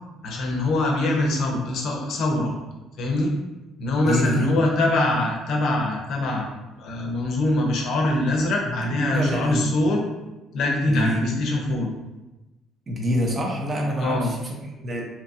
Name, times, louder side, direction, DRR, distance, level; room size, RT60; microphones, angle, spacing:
voice 1, 0.2-2.5 3.0-3.3 3.8-6.5 6.8-10.0 10.5-11.9 14.0-14.3, left 2 dB, 70° left, 0 dB, 0.6 m, -23 dB
voice 2, 4.0-4.8 8.8-9.6 10.9-11.3 12.9-15.0, equal, 35° right, -1 dB, 0.7 m, -26 dB
2.8 x 2.3 x 2.6 m, 1.0 s
cardioid pair, 100°, 0 cm